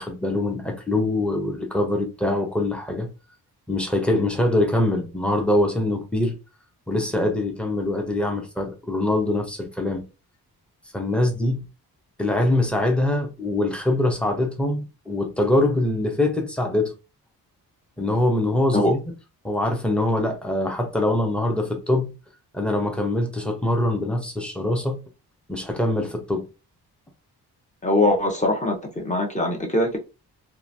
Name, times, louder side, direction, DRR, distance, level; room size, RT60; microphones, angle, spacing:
voice 1, 0.0-3.1 3.7-6.4 6.9-10.0 10.9-11.7 12.2-16.9 18.0-19.1 19.4-22.1 22.5-25.0 25.5-26.5, left 1 dB, 5° left, 0.9 m, -23 dB
voice 2, 27.8-30.0, left 1 dB, 20° left, 1.1 m, -22 dB
3.0 x 2.5 x 2.7 m
cardioid pair, 65°, 40 cm